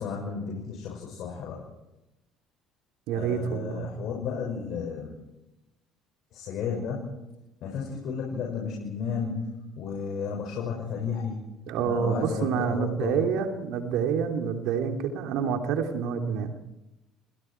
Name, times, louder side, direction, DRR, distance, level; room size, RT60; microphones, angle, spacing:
voice 1, 0.0-1.6 3.1-5.1 6.3-7.1 7.6-9.4 9.8-11.4 11.8-13.2, left 6 dB, 65° left, 0 dB, 6.3 m, -33 dB
voice 2, 3.1-3.9 11.7-16.5, right 7 dB, 70° right, 5 dB, 3.2 m, -28 dB
30.0 x 28.5 x 4.7 m, 0.94 s
hypercardioid pair, 65°, 0 cm